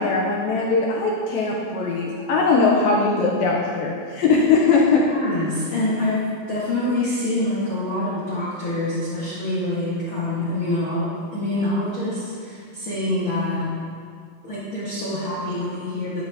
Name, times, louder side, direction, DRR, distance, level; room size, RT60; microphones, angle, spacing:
voice 1, 0.0-5.1, left 4 dB, 75° left, -2 dB, 2.3 m, -20 dB
voice 2, 5.0-13.7 14.4-16.3, left 1 dB, 50° left, -9 dB, 1.5 m, -26 dB
11.5 x 10.0 x 2.8 m, 2.1 s
omnidirectional pair, 4.7 m